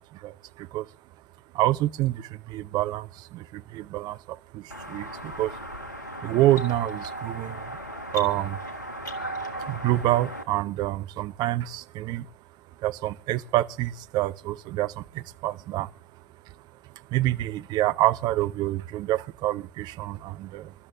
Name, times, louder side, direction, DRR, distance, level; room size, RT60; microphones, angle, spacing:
voice 1, 0.1-0.9 1.5-5.6 6.2-7.8 8.1-8.6 9.6-12.3 12.8-15.9 17.1-20.7, right 15 dB, 50° right, 0.7 m, -27 dB
sound 1, 4.7-10.4, right 1 dB, 85° left, 1.4 m, -36 dB
23.0 x 12.5 x 3.7 m
figure-of-eight pair, 65°, 9 cm